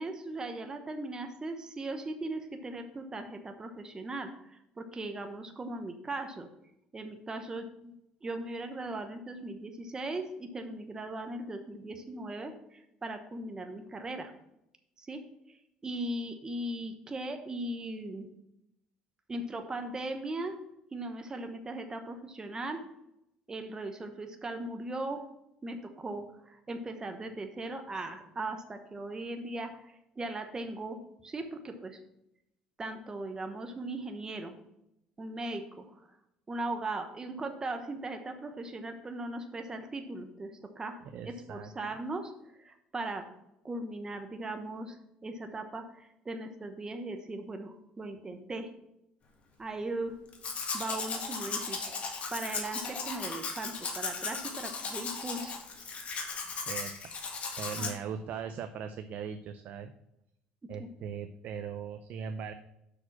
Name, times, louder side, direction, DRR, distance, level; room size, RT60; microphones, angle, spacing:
voice 1, 0.0-6.5 6.9-7.9 8.2-14.3 15.0-15.2 15.8-18.3 19.3-20.6 20.9-22.8 23.5-25.2 25.6-32.0 32.8-34.5 35.2-36.0 36.5-42.3 42.6-43.3 43.6-45.0 45.2-48.7 49.6-50.2 50.7-55.6 57.8-57.9 60.8-60.9, right 2 dB, 20° right, 6 dB, 1.0 m, -38 dB
voice 2, 41.0-41.7 56.7-56.9 57.6-59.9 60.7-62.5, right 7 dB, 60° right, 9 dB, 0.5 m, -39 dB
Domestic sounds home sounds, 50.3-57.9, left 4 dB, 40° left, 1.6 m, -37 dB
6.1 x 5.0 x 5.8 m, 0.81 s
cardioid pair, 100°, 3 cm